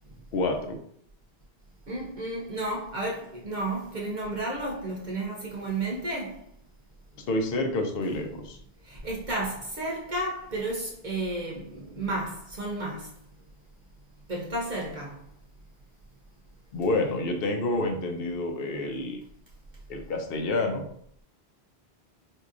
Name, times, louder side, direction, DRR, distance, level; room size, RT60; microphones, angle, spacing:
voice 1, 0.3-0.8 7.3-8.6 16.7-19.2 19.9-20.9, left 2 dB, 65° left, 0.8 m, -28 dB
voice 2, 1.9-6.5 8.8-13.1 14.3-15.2, right 2 dB, 50° right, 0.8 m, -32 dB
4.5 x 2.7 x 2.4 m
omnidirectional pair, 1.1 m